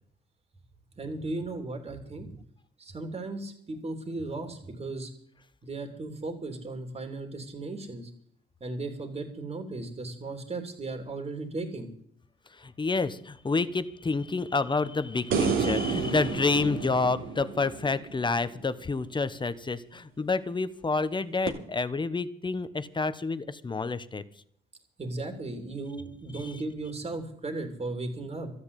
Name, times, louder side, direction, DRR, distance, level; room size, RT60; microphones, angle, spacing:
voice 1, 1.0-2.3 2.8-5.1 5.6-8.1 8.6-11.9 25.0-28.5, right 2 dB, 30° right, 5 dB, 3.3 m, -36 dB
voice 2, 12.5-24.2 26.4-26.5, left 3 dB, 25° left, 13 dB, 1.1 m, -29 dB
sound 1, 15.3-18.6 21.5-21.6, right 5 dB, 80° right, 3.1 m, -30 dB
13.5 x 9.8 x 8.5 m, 0.66 s
cardioid pair, 90°, 20 cm